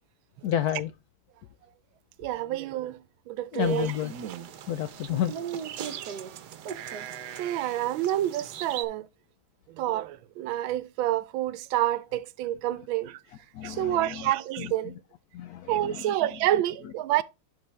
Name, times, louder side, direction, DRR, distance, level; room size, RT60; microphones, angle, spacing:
voice 1, 0.4-0.9 3.5-4.1 4.7-5.3 13.5-14.2 15.3-16.0, left 11 dB, 80° left, 0.8 m, -30 dB
voice 2, 2.2-3.0 3.3-3.9 7.4-9.1 9.7-13.2 13.6-15.0 15.7-17.2, right 13 dB, 85° right, 1.4 m, -28 dB
sound 1, 3.6-8.9, right 8 dB, 65° right, 1.2 m, -38 dB
11.0 x 4.1 x 3.2 m
omnidirectional pair, 2.1 m